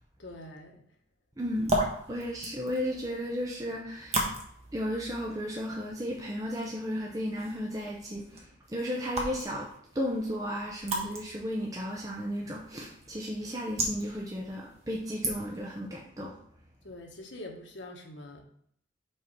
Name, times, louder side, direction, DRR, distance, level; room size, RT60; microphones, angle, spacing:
voice 1, 0.2-0.9 16.8-18.4, left 1 dB, 75° left, 2 dB, 1.3 m, -44 dB
voice 2, 1.4-1.7 2.1-4.2 4.7-9.7 9.9-16.3, equal, 20° right, -2 dB, 0.8 m, -34 dB
sound 1, 1.4-15.8, right 1 dB, 35° right, 1.3 m, -37 dB
5.5 x 4.5 x 5.5 m, 0.68 s
head